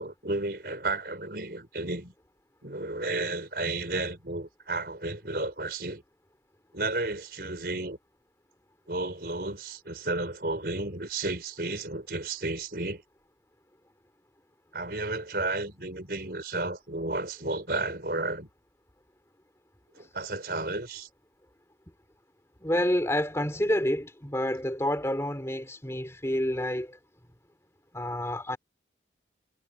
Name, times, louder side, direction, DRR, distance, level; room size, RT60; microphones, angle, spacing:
voice 1, 0.0-2.1 2.6-6.0 6.7-8.0 8.9-13.0 14.7-18.5 20.0-21.1, right 2 dB, 55° right, 5.1 m, -32 dB
voice 2, 22.6-27.0 27.9-28.6, left 1 dB, 15° left, 2.8 m, -28 dB
head